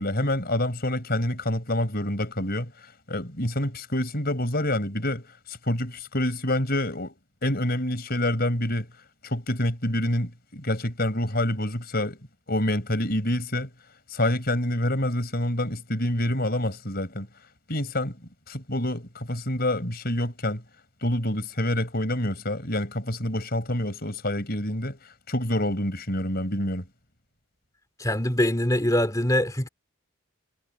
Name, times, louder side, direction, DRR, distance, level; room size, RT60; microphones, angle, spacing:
voice 1, 0.0-2.7 3.1-5.2 5.5-7.1 7.4-8.9 9.2-12.2 12.5-13.7 14.1-17.3 17.7-18.1 18.5-20.6 21.0-25.0 25.3-26.8, left 1 dB, 45° left, 5.2 m, -27 dB
voice 2, 28.0-29.7, left 1 dB, 15° left, 2.6 m, -23 dB
head